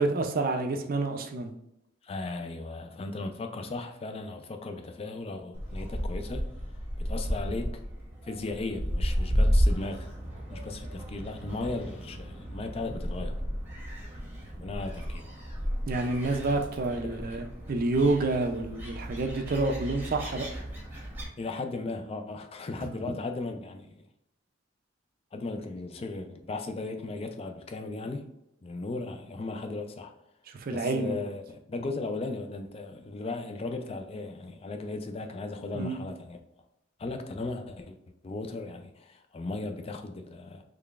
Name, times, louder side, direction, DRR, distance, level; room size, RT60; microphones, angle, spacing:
voice 1, 0.0-1.5 15.9-20.5 22.8-22.9 30.5-31.2 35.7-36.0, right 2 dB, 45° right, 6 dB, 0.4 m, -28 dB
voice 2, 2.0-6.5 7.0-7.8 8.2-10.1 10.5-13.3 14.6-15.3 17.1-17.2 21.4-24.0 25.3-28.3 28.6-30.1 30.7-36.4 37.0-38.0 38.2-40.6, left 3 dB, 30° left, 6 dB, 0.3 m, -36 dB
Gull seagull, 5.5-21.3, equal, 10° right, 0.9 m, -33 dB
3.8 x 3.2 x 2.4 m, 0.83 s
head